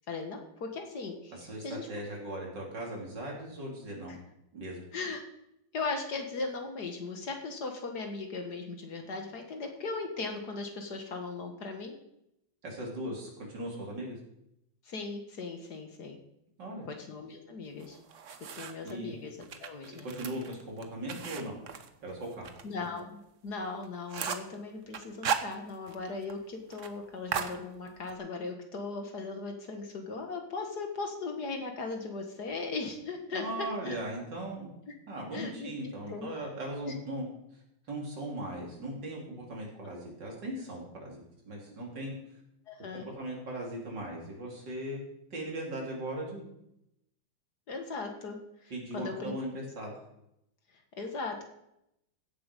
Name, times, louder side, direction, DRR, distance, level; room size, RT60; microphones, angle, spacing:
voice 1, 0.1-1.4 1.6-1.9 4.1-4.2 4.9-5.2 5.7-12.0 14.8-16.2 16.9-18.0 18.6-20.1 22.6-34.0 34.9-35.0 35.3-36.3 36.9-37.0 39.8-39.9 42.7-43.1 47.7-49.3 51.0-51.5, left 3 dB, 60° left, 4 dB, 2.1 m, -38 dB
voice 2, 1.3-4.2 4.5-4.8 12.6-14.2 16.6-16.9 18.8-19.1 20.0-21.6 22.0-22.5 33.3-34.7 35.1-37.3 37.9-42.1 43.0-45.0 45.3-46.4 48.7-49.9, right 1 dB, 65° right, -2 dB, 3.9 m, -38 dB
sound 1, 17.8-18.9 19.4-22.6 23.0-23.1 23.5-23.6 23.8-24.5 24.9-26.0 26.3-26.4 26.7-26.9 27.3-28.2, right 7 dB, 50° right, 1.1 m, -36 dB
16.0 x 7.8 x 5.3 m, 0.80 s
omnidirectional pair, 2.0 m